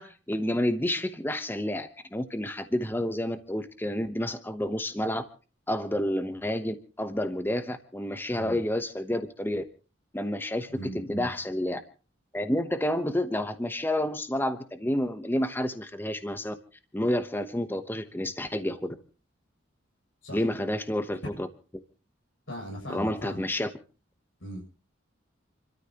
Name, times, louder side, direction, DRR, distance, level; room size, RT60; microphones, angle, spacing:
voice 1, 0.0-5.2 5.7-9.6 10.1-11.8 12.3-16.5 16.9-19.0 20.3-21.5 22.9-23.7, left 1 dB, 10° left, 9 dB, 1.0 m, -29 dB
voice 2, 10.7-11.3 20.2-20.4 22.5-23.4 24.4-24.6, equal, 90° left, -1 dB, 7.6 m, -39 dB
29.0 x 13.5 x 3.0 m, 0.35 s
head